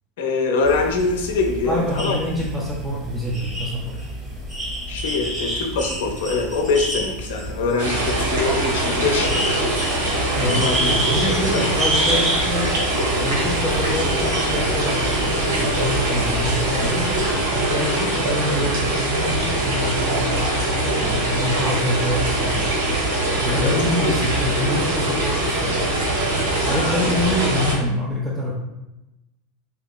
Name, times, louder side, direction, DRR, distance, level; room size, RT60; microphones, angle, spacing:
voice 1, 0.2-2.2 4.9-9.6 10.4-10.9 11.2-11.7 23.5-23.7 26.6-27.2, left 4 dB, 70° left, 2 dB, 0.6 m, -24 dB
sound 1, 0.6-17.3, right 1 dB, 20° right, 1.1 m, -29 dB
voice 2, 1.7-4.0 10.3-12.8 13.2-17.2 17.5-22.7 23.4-26.0 26.6-28.5, left 1 dB, 5° right, -5 dB, 0.6 m, -26 dB
sound 2, 7.8-27.7, right 1 dB, 80° right, 1.0 m, -22 dB
3.6 x 2.8 x 2.3 m, 0.97 s
hypercardioid pair, 90°, 0 cm